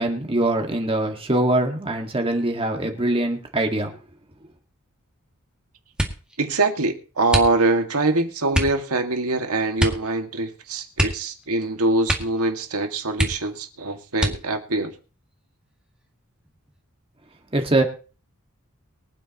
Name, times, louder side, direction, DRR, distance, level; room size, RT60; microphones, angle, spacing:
voice 1, 0.0-4.0 17.5-17.8, right 1 dB, 25° right, 1.8 m, -23 dB
sound 1, 5.9-6.4 7.3-7.9 8.5-8.8 9.8-10.1 10.4-10.5 10.9-11.7 12.0-12.5 12.8-12.9 13.1-13.7 14.1-14.7 15.4-16.0 16.4-16.8, right 1 dB, 5° right, 2.1 m, -26 dB
voice 2, 6.4-14.9, right 2 dB, 85° right, 2.0 m, -23 dB
23.5 x 9.3 x 3.0 m
head